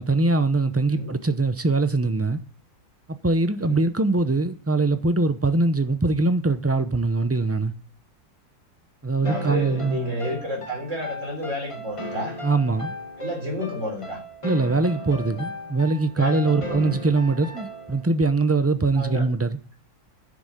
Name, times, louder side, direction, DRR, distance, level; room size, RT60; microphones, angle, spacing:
voice 1, 0.0-2.4 3.1-7.7 9.0-10.1 12.4-12.9 14.4-19.5, right 3 dB, 20° right, 0.4 m, -22 dB
sound 1, 9.2-18.1, left 1 dB, 20° left, 1.6 m, -36 dB
voice 2, 9.2-12.4 13.2-14.2 16.2-17.0 19.0-19.3, left 1 dB, 50° right, 4.1 m, -31 dB
10.0 x 6.9 x 9.0 m
omnidirectional pair, 1.6 m